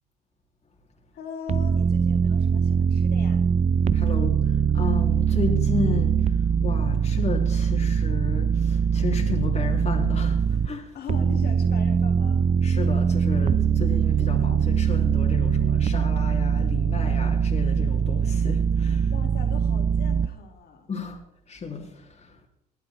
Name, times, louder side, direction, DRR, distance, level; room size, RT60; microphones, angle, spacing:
voice 1, 1.1-3.4 10.9-12.5 19.1-20.9, left 6 dB, 55° left, 3.7 m, -40 dB
sound 1, 1.5-10.7 11.1-20.3, right 7 dB, 35° right, 0.7 m, -22 dB
voice 2, 3.9-10.9 12.6-19.1 20.9-21.2 21.5-22.3, left 4 dB, 35° left, 3.3 m, -32 dB
20.0 x 11.5 x 4.4 m
hypercardioid pair, 70°, 19 cm